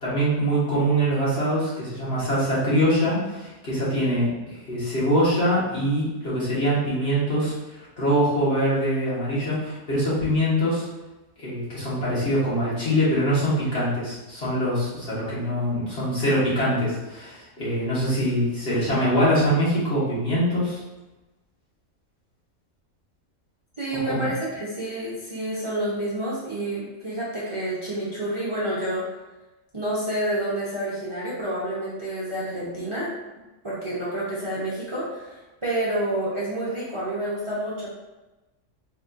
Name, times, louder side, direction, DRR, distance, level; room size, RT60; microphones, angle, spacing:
voice 1, 0.0-7.5 8.0-10.9 11.4-20.8 24.1-24.3, equal, 55° left, -9 dB, 1.7 m, -23 dB
voice 2, 23.8-29.0 29.7-33.1 33.6-37.9, right 1 dB, 30° right, -8 dB, 0.7 m, -29 dB
4.1 x 3.5 x 2.5 m, 1.1 s
omnidirectional pair, 1.3 m